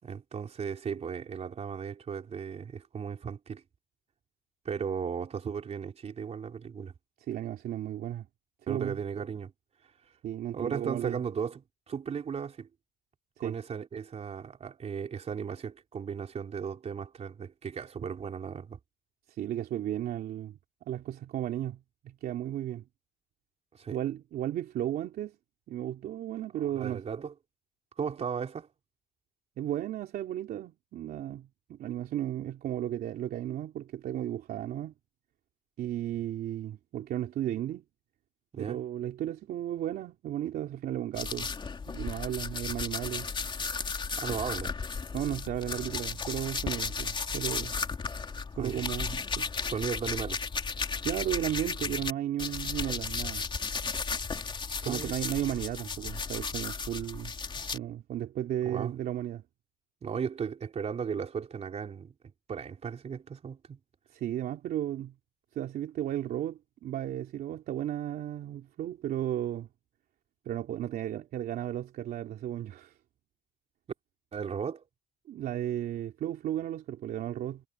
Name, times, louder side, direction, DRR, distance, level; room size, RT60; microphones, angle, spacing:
voice 1, 0.0-3.6 4.6-6.9 8.7-9.5 10.5-12.7 13.4-18.8 23.7-24.0 26.6-27.3 28.0-28.7 38.5-38.8 44.2-44.7 48.6-48.8 49.7-50.4 54.8-55.1 58.6-58.9 60.0-62.1 62.5-63.8 74.3-74.8, right 6 dB, 40° right, 4.1 m, -36 dB
voice 2, 7.3-8.3 8.7-9.0 10.2-11.2 13.4-13.5 19.3-20.6 20.9-22.8 23.9-25.3 25.7-27.0 29.6-34.9 35.8-37.8 38.6-41.5 41.9-43.3 44.3-44.4 45.1-47.8 48.6-49.5 51.0-53.5 54.8-57.3 57.7-59.4 64.1-65.1 65.5-69.7 70.4-72.9 75.3-77.6, right 12 dB, 65° right, 3.0 m, -34 dB
sound 1, 41.1-52.1 52.4-57.8, left 5 dB, 30° left, 3.6 m, -34 dB
cardioid pair, 110°, 17 cm